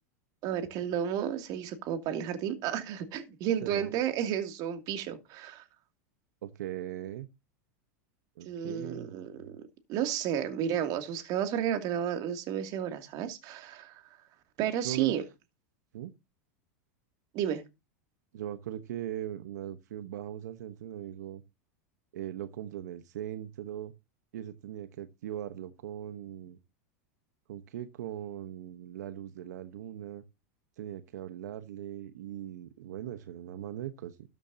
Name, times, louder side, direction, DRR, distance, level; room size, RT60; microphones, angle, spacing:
voice 1, 0.4-5.6 8.4-9.5 9.9-14.0 14.6-15.2 17.3-17.6, right 9 dB, 45° right, 2.6 m, -32 dB
voice 2, 6.4-7.3 8.4-9.6 14.8-15.1 15.9-16.1 18.3-21.4 22.1-23.9 24.3-26.6 27.5-30.2 30.8-34.2, right 11 dB, 80° right, 1.1 m, -40 dB
13.5 x 8.9 x 2.8 m
supercardioid pair, 130°, 9 cm